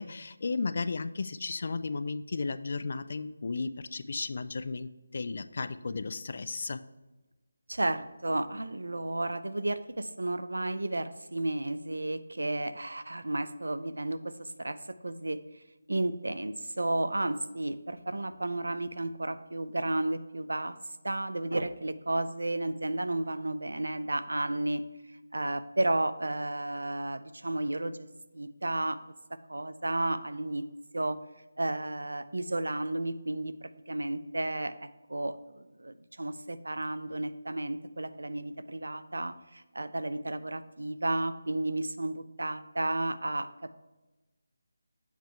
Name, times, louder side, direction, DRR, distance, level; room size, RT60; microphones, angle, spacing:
voice 1, 0.0-6.8, left 4 dB, 55° left, 13 dB, 0.3 m, -34 dB
voice 2, 7.7-15.4 15.9-20.8 21.0-24.8 25.3-28.0 28.3-29.0 29.5-30.7 30.9-31.2 31.6-43.7, right 2 dB, 85° right, 12 dB, 0.4 m, -32 dB
7.2 x 3.8 x 4.4 m, 1.1 s
figure-of-eight pair, 160°, 0 cm